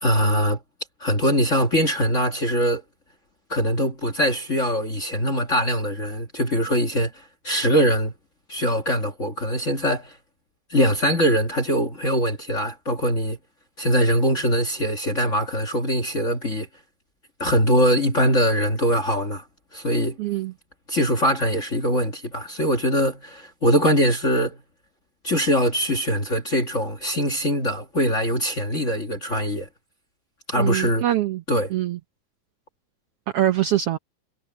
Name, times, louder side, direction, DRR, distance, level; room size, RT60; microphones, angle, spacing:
voice 1, 0.0-0.6 1.0-2.8 3.5-8.1 8.5-10.2 10.7-13.4 13.8-16.7 17.4-19.4 19.7-20.2 20.9-24.6 25.2-29.7 30.5-31.0 31.5-31.7, equal, 35° left, 1.4 m, -22 dB
voice 2, 20.2-20.5 30.5-31.4 31.7-32.0 33.3-34.0, right 12 dB, 75° right, 1.3 m, -23 dB
omnidirectional pair, 3.6 m